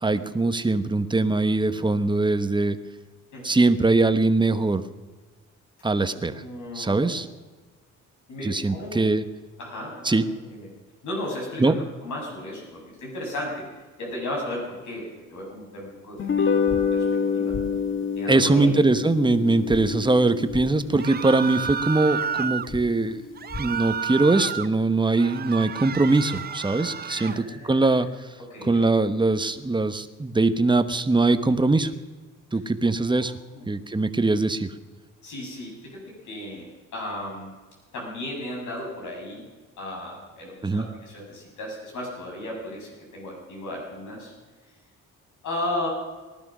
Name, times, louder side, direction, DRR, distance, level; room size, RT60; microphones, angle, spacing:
voice 1, 0.0-2.8 3.4-4.8 5.8-6.3 6.7-7.3 8.4-9.2 10.0-10.2 11.6-11.8 18.3-23.2 23.6-28.1 28.6-31.9 32.5-33.3 33.7-34.7 40.6-40.9, right 2 dB, 15° right, 11 dB, 1.1 m, -22 dB
voice 2, 6.0-7.2 8.3-9.0 9.6-10.7 11.0-13.6 14.0-15.0 15.3-17.0 17.3-17.6 18.2-18.7 22.2-22.3 27.1-27.9 28.5-28.8 33.2-33.7 35.2-36.6 36.9-37.5 37.9-39.5 39.8-44.3 45.4-45.9, left 1 dB, 75° left, -1 dB, 7.5 m, -35 dB
sound 1, 16.2-22.7, left 6 dB, 40° left, 1.6 m, -28 dB
sound 2, 16.7-16.8 17.5-17.6 19.7-19.8 20.5-20.6 22.7-22.8 23.5-23.6, left 3 dB, 20° left, 1.9 m, -35 dB
sound 3, 21.0-22.7 23.4-24.7 25.1-27.4, right 7 dB, 30° right, 0.6 m, -31 dB
19.0 x 12.0 x 6.2 m, 1.3 s
cardioid pair, 90°, 30 cm